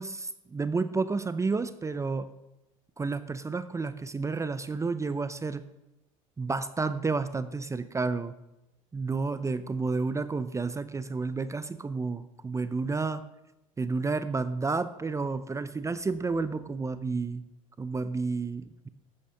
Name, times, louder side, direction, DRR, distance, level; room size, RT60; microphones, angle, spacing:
voice 1, 0.0-2.3 3.0-5.7 6.4-8.3 8.9-13.3 13.8-17.4 17.8-18.9, right 4 dB, 15° right, 13 dB, 0.6 m, -31 dB
13.0 x 8.4 x 5.6 m, 0.93 s
hypercardioid pair, 80°, 18 cm